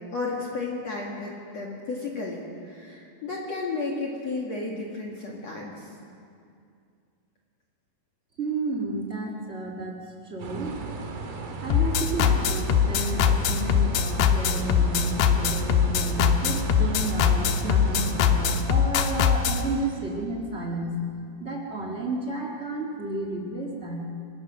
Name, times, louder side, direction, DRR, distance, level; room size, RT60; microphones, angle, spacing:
voice 1, 0.0-5.9, left 3 dB, 45° left, -2 dB, 2.8 m, -33 dB
voice 2, 8.4-10.0 10.2-10.8 11.6-21.0 21.4-24.0, right 2 dB, 80° right, -2 dB, 0.6 m, -32 dB
sound 1, 10.4-18.6, right 3 dB, 65° right, 3.8 m, -35 dB
sound 2, 11.7-19.6, left 7 dB, 75° left, 2.9 m, -21 dB
28.5 x 18.0 x 6.5 m, 2.4 s
omnidirectional pair, 4.8 m